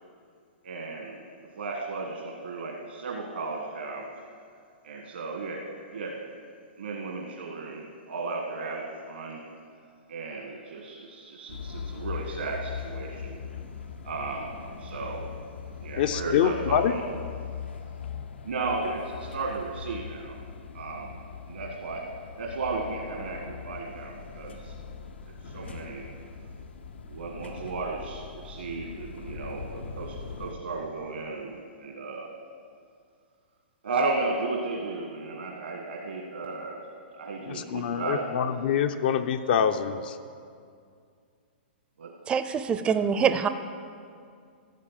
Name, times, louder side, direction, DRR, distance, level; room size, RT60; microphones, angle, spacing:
voice 1, 0.6-1.2 1.5-4.1 4.8-5.6 5.9-6.2 6.8-9.4 10.1-13.4 14.0-15.3 15.8-17.0 18.4-20.4 20.7-21.2 21.5-22.0 22.4-24.7 25.4-26.0 27.1-32.3 33.8-36.9 37.1-38.3 42.0-42.1, right 3 dB, 85° right, 0 dB, 1.6 m, -34 dB
sound 1, 11.5-30.5, left 6 dB, 85° left, 0.9 m, -40 dB
voice 2, 16.0-16.9 37.4-40.2, left 8 dB, 60° left, 8 dB, 0.6 m, -25 dB
voice 3, 42.3-43.5, right 7 dB, 15° right, 10 dB, 0.5 m, -24 dB
13.5 x 6.8 x 7.4 m, 2.3 s
hypercardioid pair, 135°, 6 cm